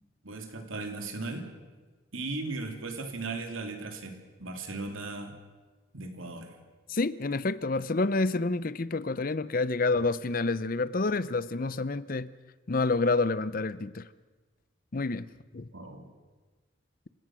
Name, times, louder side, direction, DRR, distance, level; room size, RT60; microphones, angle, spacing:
voice 1, 0.2-1.5 2.1-5.4 5.9-6.5 15.7-16.0, right 3 dB, 80° right, 5 dB, 3.0 m, -37 dB
voice 2, 6.9-12.3 12.7-14.1 14.9-15.3 15.5-15.7, left 3 dB, 45° left, 16 dB, 0.6 m, -28 dB
28.0 x 17.0 x 6.2 m, 1.3 s
head